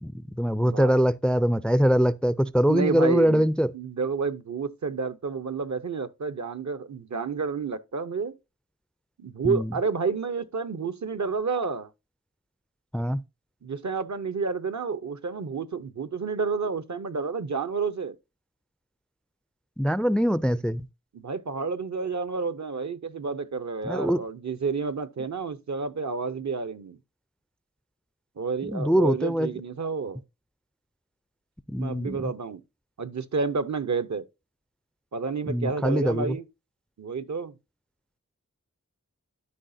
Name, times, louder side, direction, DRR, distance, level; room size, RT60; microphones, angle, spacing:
voice 1, 0.0-3.7 9.4-9.7 12.9-13.2 19.8-20.9 23.8-24.2 28.6-29.5 31.7-32.3 35.5-36.4, equal, 5° left, 0.3 m, -23 dB
voice 2, 0.6-0.9 2.6-3.4 3.7-8.4 9.2-11.9 13.6-18.2 21.1-27.0 28.4-30.2 31.8-32.6 33.0-34.2 35.1-36.4 37.0-37.5, right 5 dB, 65° right, 0.7 m, -30 dB
12.5 x 4.9 x 2.6 m
wide cardioid pair, 40°, 31 cm